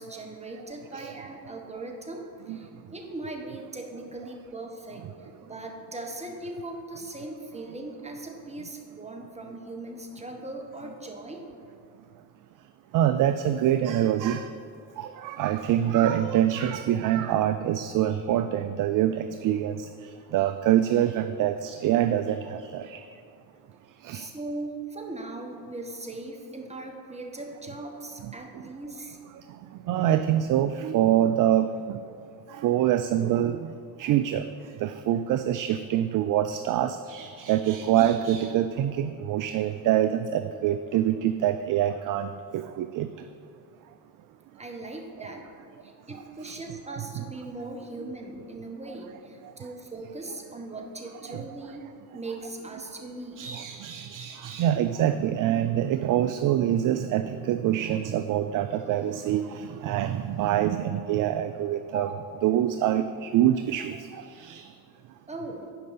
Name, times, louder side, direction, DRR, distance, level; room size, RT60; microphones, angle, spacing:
voice 1, 0.0-11.4 24.1-29.2 44.6-45.5 45.8-51.8 52.1-53.4 61.9-62.2 65.3-65.7, right 2 dB, 15° right, 2 dB, 1.5 m, -39 dB
voice 2, 12.9-14.4 15.0-19.8 20.3-23.0 24.0-24.3 29.9-32.0 32.6-33.7 34.0-34.4 34.8-43.1 46.5-46.6 51.3-51.4 53.4-62.1 62.4-64.0 64.4-64.6, right 11 dB, 45° right, 10 dB, 0.4 m, -25 dB
9.5 x 5.3 x 5.5 m, 2.3 s
hypercardioid pair, 55°, 49 cm